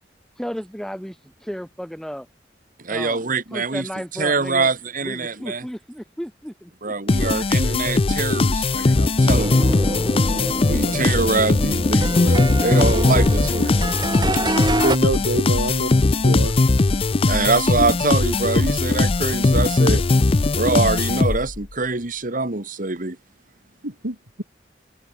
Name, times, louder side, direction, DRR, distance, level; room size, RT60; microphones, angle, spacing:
voice 1, 0.4-2.3 2.9-3.2 3.5-4.7 5.0-7.4, equal, 5° left, 3.8 m, -34 dB
voice 2, 2.8-3.9 4.2-5.6 6.8-9.6 10.6-13.7 14.3-14.4 17.2-20.0 20.5-23.2, right 3 dB, 50° right, 2.0 m, -24 dB
sound 1, 7.1-21.6, left 3 dB, 30° left, 0.5 m, -19 dB
sound 2, 9.3-15.0, right 1 dB, 25° right, 2.7 m, -26 dB
voice 3, 14.8-15.9 16.2-16.5 23.8-24.4, right 1 dB, 80° right, 6.2 m, -25 dB
head